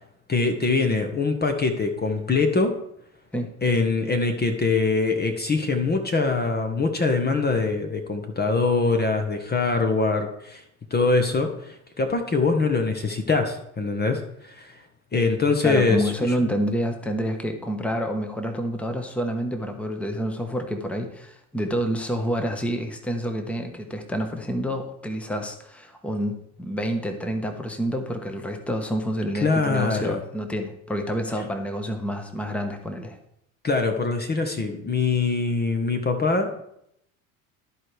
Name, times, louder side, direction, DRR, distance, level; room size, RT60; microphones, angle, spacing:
voice 1, 0.3-2.7 3.6-10.6 10.9-14.8 15.1-16.3 29.3-30.2 33.6-36.6, left 3 dB, 20° left, 6 dB, 1.1 m, -23 dB
voice 2, 15.6-33.2, equal, 5° left, 5 dB, 1.2 m, -28 dB
13.5 x 4.8 x 3.4 m, 0.76 s
hypercardioid pair, 75°, 43 cm